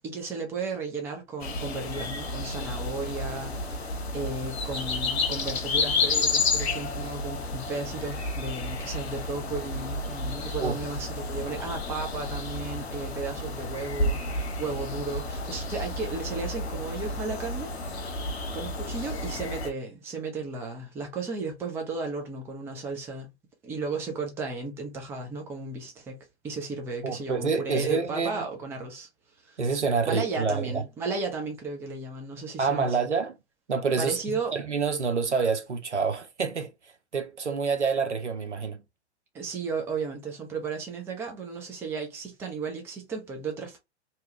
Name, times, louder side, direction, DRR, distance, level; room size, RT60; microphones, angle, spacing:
voice 1, 0.0-18.1 18.5-23.3 23.6-26.2 26.4-29.1 29.4-29.6 30.1-33.0 34.0-34.5 39.3-43.8, right 3 dB, 10° right, 0.4 m, -34 dB
sound 1, 1.4-19.7, left 3 dB, 65° left, 0.9 m, -31 dB
voice 2, 27.0-28.4 29.6-30.8 32.6-33.4 33.7-36.7 37.1-38.8, right 5 dB, 85° right, 0.7 m, -27 dB
2.9 x 2.2 x 2.9 m
figure-of-eight pair, 105°, 34 cm